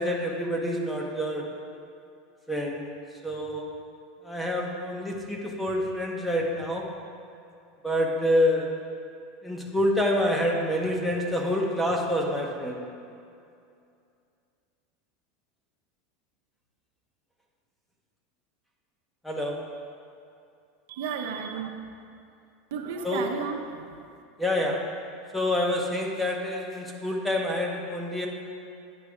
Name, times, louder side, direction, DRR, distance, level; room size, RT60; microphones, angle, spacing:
voice 1, 0.0-1.4 2.5-2.9 3.2-3.7 4.2-6.8 7.8-8.7 9.4-12.8 19.2-19.5 23.0-23.2 24.4-24.8 25.3-28.3, left 1 dB, 5° left, 0 dB, 0.9 m, -27 dB
voice 2, 20.9-21.8 22.7-24.1, right 6 dB, 80° right, 2 dB, 0.7 m, -33 dB
9.9 x 4.1 x 4.9 m, 2.5 s
supercardioid pair, 135°, 0 cm